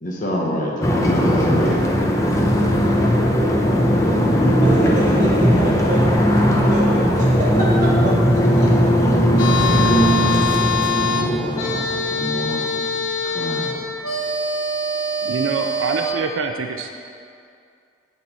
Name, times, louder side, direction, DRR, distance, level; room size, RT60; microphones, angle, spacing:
voice 1, 0.0-2.0 10.9-11.8 12.1-12.6 13.3-13.8, left 1 dB, 40° left, -2 dB, 1.1 m, -26 dB
sound 1, 0.8-12.7, equal, 15° left, 0.6 m, -18 dB
voice 2, 4.4-8.7, right 1 dB, 35° right, -7 dB, 2.0 m, -26 dB
sound 2, 9.4-16.1, left 3 dB, 80° left, 0.9 m, -24 dB
voice 3, 15.2-17.0, right 4 dB, 75° right, 5 dB, 0.5 m, -25 dB
7.7 x 6.8 x 4.2 m, 2.4 s
head